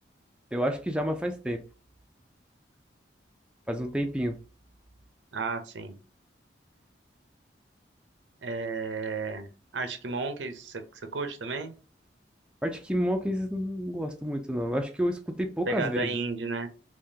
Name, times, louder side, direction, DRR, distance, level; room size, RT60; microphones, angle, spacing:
voice 1, 0.5-1.6 3.7-4.4 12.6-16.2, equal, 5° right, 0.4 m, -29 dB
voice 2, 5.3-6.0 8.4-11.8 15.7-16.7, right 3 dB, 80° right, 0.7 m, -33 dB
3.6 x 2.9 x 2.7 m
head